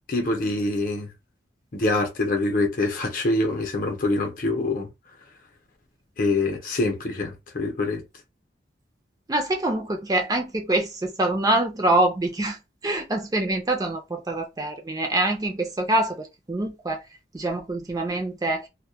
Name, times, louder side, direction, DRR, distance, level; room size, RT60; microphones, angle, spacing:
voice 1, 0.1-1.1 1.7-4.9 6.2-8.0, left 2 dB, 50° left, 0.7 m, -25 dB
voice 2, 9.3-12.6 12.8-17.0 17.3-18.7, right 1 dB, 20° right, 0.4 m, -25 dB
2.2 x 2.1 x 2.7 m
head